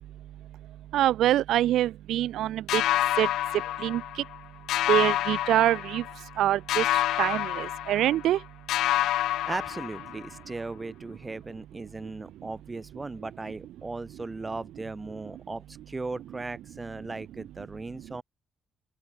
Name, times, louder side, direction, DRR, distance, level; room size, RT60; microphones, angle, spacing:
voice 1, 0.9-2.8 3.2-3.3 3.8-4.0 4.9-6.0 6.4-8.4, right 13 dB, 80° right, 0.8 m, -25 dB
sound 1, 2.7-4.4 4.7-6.3 6.7-8.4 8.7-10.4, left 14 dB, 85° left, 1.6 m, -28 dB
voice 2, 9.4-18.2, right 3 dB, 20° right, 4.3 m, -37 dB
open air
cardioid pair, 90°, 0 cm